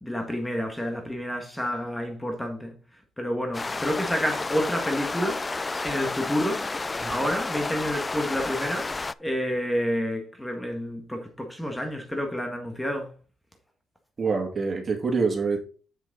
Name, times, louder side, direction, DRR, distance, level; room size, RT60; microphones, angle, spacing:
voice 1, 0.0-6.6 7.1-13.1, equal, 10° left, 1.7 m, -29 dB
sound 1, 3.5-9.1, left 3 dB, 25° left, 0.3 m, -31 dB
voice 2, 14.2-15.6, right 4 dB, 40° right, 2.5 m, -25 dB
7.9 x 6.4 x 4.0 m
cardioid pair, 90°, 0 cm